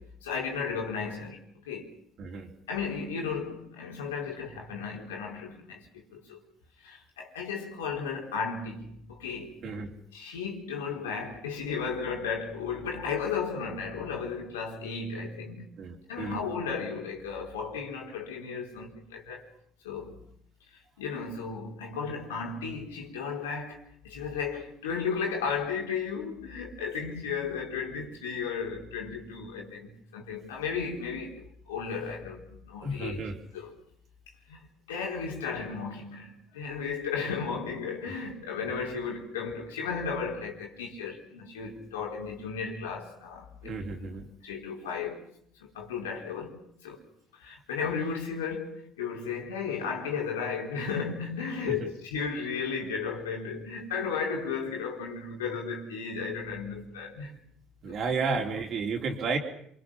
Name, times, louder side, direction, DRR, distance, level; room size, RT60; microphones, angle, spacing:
voice 1, 0.0-1.9 2.7-6.4 6.8-9.6 10.1-15.7 16.1-19.5 19.8-20.2 20.7-23.8 24.0-33.2 33.5-33.7 34.5-43.7 44.0-44.2 44.4-45.2 45.6-47.0 47.4-57.4 58.1-58.3, left 5 dB, 90° left, 4.2 m, -34 dB
voice 2, 2.2-2.5 9.6-9.9 15.8-16.4 32.8-33.4 43.6-44.3 51.7-51.9 57.8-59.4, right 4 dB, 55° right, 4.0 m, -32 dB
27.5 x 24.0 x 5.8 m
hypercardioid pair, 65°, 0 cm